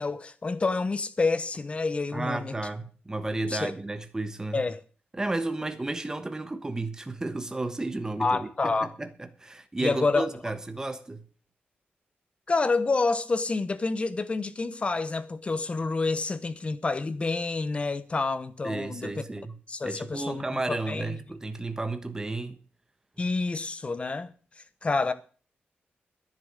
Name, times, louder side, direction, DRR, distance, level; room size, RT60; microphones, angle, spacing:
voice 1, 0.0-2.6 3.5-3.7 4.5-4.8 8.2-8.9 9.8-10.3 12.5-19.1 19.7-21.2 23.2-25.1, left 3 dB, 30° left, 1.1 m, -28 dB
voice 2, 2.1-4.6 5.1-11.2 18.6-19.6 19.8-22.6, right 2 dB, 15° right, 1.2 m, -33 dB
10.5 x 7.4 x 9.0 m
wide cardioid pair, 120°, 4 cm